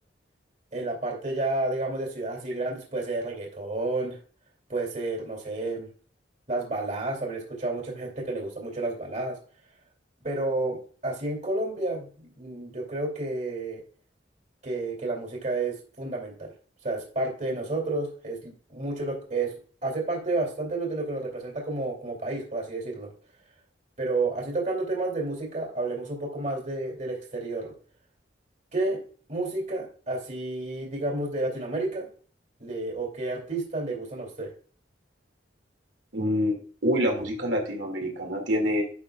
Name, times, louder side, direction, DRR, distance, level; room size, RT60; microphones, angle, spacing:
voice 1, 0.7-4.2 4.7-5.9 6.5-9.4 10.2-13.8 14.6-16.5 16.8-19.5 19.8-23.1 24.0-27.7 28.7-29.0 29.3-32.1 32.6-34.5, right 2 dB, 40° right, 0 dB, 2.6 m, -31 dB
voice 2, 36.1-38.8, equal, 85° right, 0 dB, 2.2 m, -26 dB
11.0 x 6.2 x 2.3 m, 0.43 s
head